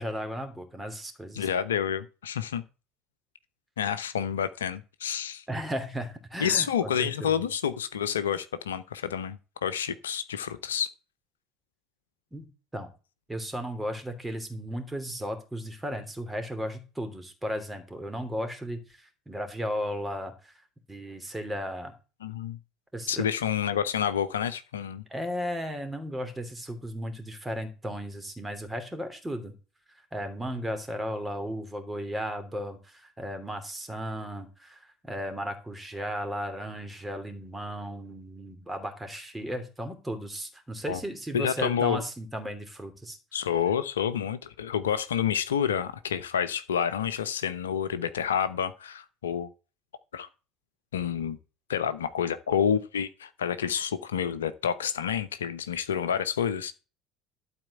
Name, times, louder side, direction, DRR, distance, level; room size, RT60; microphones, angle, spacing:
voice 1, 0.0-1.5 5.5-7.4 12.3-12.9 13.3-20.5 20.9-21.9 22.9-23.2 25.1-29.5 30.1-43.2, equal, 10° right, 2.9 m, -35 dB
voice 2, 1.3-2.6 3.8-5.4 6.4-10.9 22.2-22.6 23.1-25.0 40.9-41.0 41.3-42.0 43.3-49.5 50.1-50.3 50.9-51.4 51.7-56.7, left 8 dB, 80° left, 0.8 m, -29 dB
12.0 x 4.4 x 8.3 m
figure-of-eight pair, 65°, 0 cm